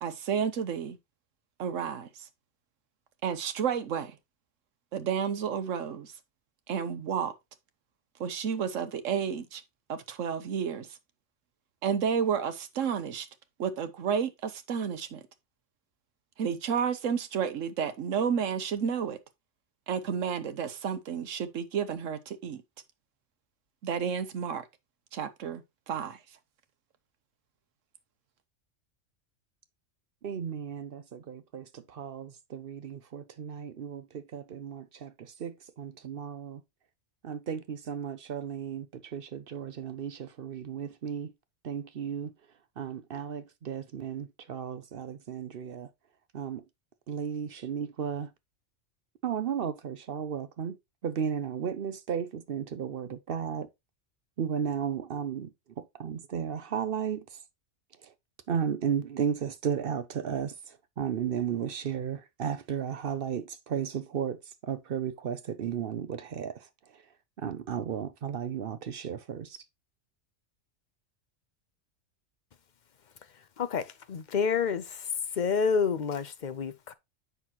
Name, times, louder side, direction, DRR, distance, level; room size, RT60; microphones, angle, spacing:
voice 1, 0.0-1.0 1.6-2.3 3.2-4.2 4.9-6.1 6.7-7.3 8.2-9.6 9.9-10.9 11.8-13.3 13.6-15.2 16.4-19.2 19.9-22.6 23.8-24.6 25.1-26.2, right 7 dB, 85° right, 1.2 m, -31 dB
voice 2, 30.2-36.6 37.2-41.3 41.6-42.3 42.8-45.9 46.3-46.6 47.1-48.3 49.2-50.8 51.0-53.7 54.4-55.5 55.8-57.3 58.0-58.1 58.5-66.7 67.4-69.6, right 8 dB, 55° right, 0.7 m, -34 dB
voice 3, 73.6-76.9, left 6 dB, 45° left, 0.7 m, -29 dB
7.9 x 6.0 x 2.9 m
omnidirectional pair, 1.3 m